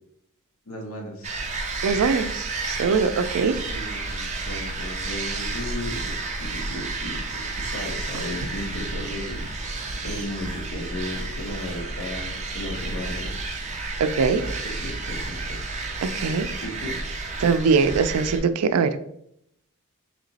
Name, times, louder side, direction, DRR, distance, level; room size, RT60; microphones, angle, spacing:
voice 1, 0.7-1.4 3.5-9.4 10.0-13.3 14.4-14.5 14.8-15.4 16.6-17.0, left 1 dB, 70° left, 0 dB, 1.0 m, -35 dB
sound 1, 1.2-18.4, right 3 dB, 30° right, 0.5 m, -31 dB
voice 2, 1.8-3.6 14.0-14.4 16.0-16.5 17.4-19.0, right 5 dB, 90° right, 11 dB, 0.4 m, -22 dB
3.2 x 2.9 x 4.0 m, 0.74 s
head